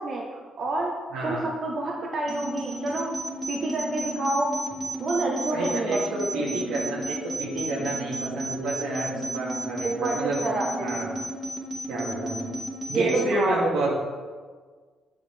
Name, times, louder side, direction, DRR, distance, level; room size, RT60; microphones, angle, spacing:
voice 1, 0.0-0.9 1.2-3.1 3.5-4.5 5.0-6.0 6.3-6.5 9.8-11.1 12.9-13.6, right 2 dB, 50° right, -1 dB, 1.2 m, -28 dB
voice 2, 1.1-1.5 5.5-10.4 10.8-11.1 11.9-12.4 12.9-13.9, right 2 dB, 90° right, -4 dB, 2.4 m, -29 dB
sound 1, 2.3-13.3, right 1 dB, 25° right, 1.9 m, -33 dB
8.3 x 7.8 x 3.5 m, 1.5 s
cardioid pair, 90°, 0 cm